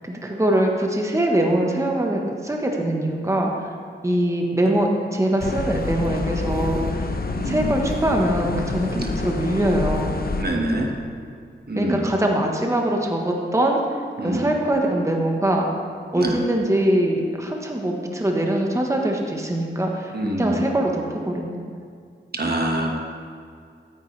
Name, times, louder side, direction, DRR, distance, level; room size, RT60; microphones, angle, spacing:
voice 1, 0.0-3.7 4.0-7.1 7.4-10.1 11.8-13.8 14.2-15.7 16.1-20.1 20.4-21.6, right 1 dB, 15° right, 1 dB, 1.2 m, -22 dB
sound 1, 5.4-10.4, left 3 dB, 45° left, 0.9 m, -27 dB
voice 2, 7.3-7.7 8.9-9.1 10.4-10.9 11.7-12.1 14.2-14.5 16.1-16.3 20.1-20.7 22.3-23.0, right 1 dB, 50° right, 1 dB, 1.5 m, -25 dB
13.5 x 9.3 x 3.3 m, 2.2 s
cardioid pair, 50°, 21 cm